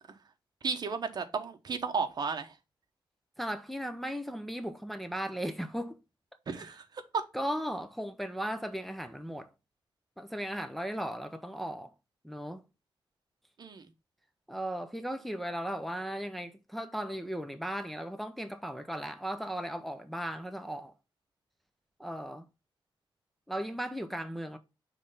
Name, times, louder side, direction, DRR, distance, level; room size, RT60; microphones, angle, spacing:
voice 1, 0.6-2.5 6.5-6.8 13.6-13.8, right 5 dB, 50° right, 0.9 m, -33 dB
voice 2, 3.4-6.0 6.6-6.7 7.3-9.5 10.2-11.9 12.2-12.6 14.5-20.9 22.0-22.5 23.5-24.6, equal, ahead, 0.6 m, -36 dB
6.1 x 3.3 x 5.4 m
wide cardioid pair, 135°, 9 cm